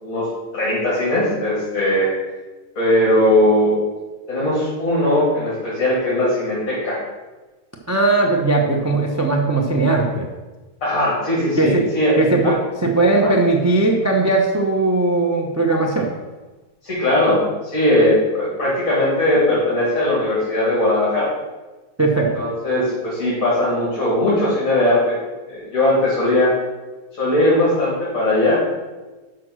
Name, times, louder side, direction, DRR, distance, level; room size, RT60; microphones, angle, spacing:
voice 1, 0.5-2.1 2.8-3.7 4.3-7.0 10.8-12.1 12.4-12.5 13.2-13.3 16.8-21.3 22.4-25.2 25.5-26.5 27.2-28.6, left 1 dB, 55° left, -7 dB, 2.9 m, -19 dB
voice 2, 7.9-10.3 11.6-11.8 12.2-12.5 12.8-16.1 22.0-22.3, right 2 dB, 20° right, 0 dB, 0.5 m, -18 dB
6.2 x 6.0 x 6.2 m, 1.2 s
omnidirectional pair, 1.7 m